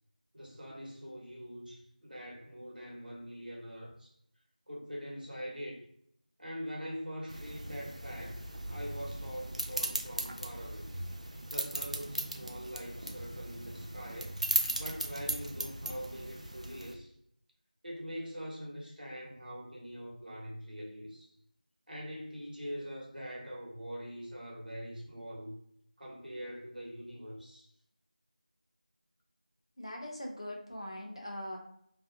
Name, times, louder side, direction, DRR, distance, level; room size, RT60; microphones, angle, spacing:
voice 1, 0.3-4.1 4.7-5.9 6.4-10.9 11.5-14.4 14.8-17.1 17.8-21.3 21.9-25.5 26.0-27.7, equal, 85° right, -3 dB, 1.1 m, -43 dB
sound 1, 7.3-16.9, right 1 dB, 50° right, 0.3 m, -37 dB
voice 2, 29.8-31.6, left 1 dB, 40° left, 0 dB, 0.5 m, -41 dB
2.5 x 2.4 x 2.5 m, 0.69 s
figure-of-eight pair, 180°, 5 cm